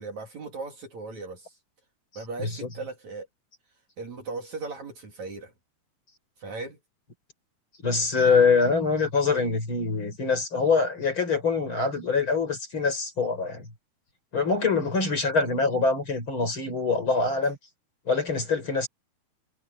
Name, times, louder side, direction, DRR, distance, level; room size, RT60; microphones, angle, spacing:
voice 1, 0.0-1.5 2.2-3.3 4.0-5.5 6.4-6.8, right 3 dB, 50° right, 3.8 m, -37 dB
voice 2, 2.4-2.7 7.8-13.7 14.3-17.6 18.1-18.9, left 4 dB, 30° left, 5.3 m, -24 dB
omnidirectional pair, 4.6 m